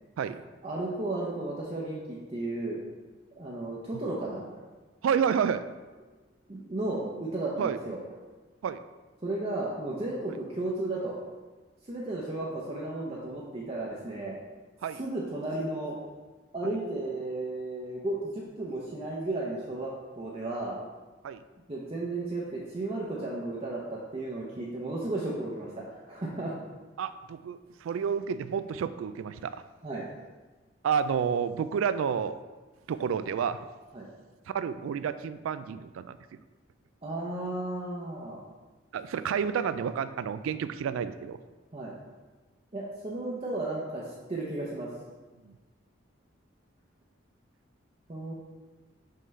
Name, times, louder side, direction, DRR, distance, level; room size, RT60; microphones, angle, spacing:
voice 1, 0.6-2.8 3.4-4.4 6.5-8.0 9.2-11.2 11.9-14.4 15.0-16.0 16.5-19.9 20.2-20.8 21.7-26.5 29.8-30.1 33.9-34.1 37.0-38.4 41.7-41.9 42.7-44.9 48.1-48.3, right 2 dB, 30° right, -5 dB, 0.7 m, -34 dB
voice 2, 5.0-5.6 7.6-7.8 8.6-8.8 14.8-15.0 16.6-16.7 21.2-21.4 27.0-29.6 30.8-32.4 32.9-33.6 34.5-36.2 38.9-41.4 45.5-45.6, right 7 dB, 85° right, 13 dB, 0.3 m, -30 dB
5.6 x 5.4 x 3.2 m, 1.3 s
head